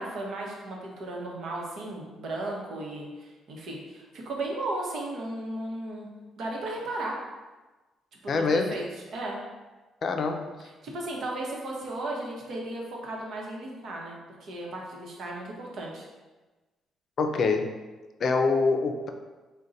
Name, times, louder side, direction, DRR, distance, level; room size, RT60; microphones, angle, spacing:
voice 1, 0.0-6.1 6.4-7.2 8.2-8.8 9.1-9.4 10.8-16.1, right 2 dB, 70° right, -2 dB, 0.9 m, -35 dB
voice 2, 8.3-8.7 10.0-10.4 17.2-17.7 18.2-19.1, left 4 dB, 55° left, 5 dB, 0.4 m, -25 dB
3.7 x 2.2 x 3.9 m, 1.2 s
cardioid pair, 90°, 0 cm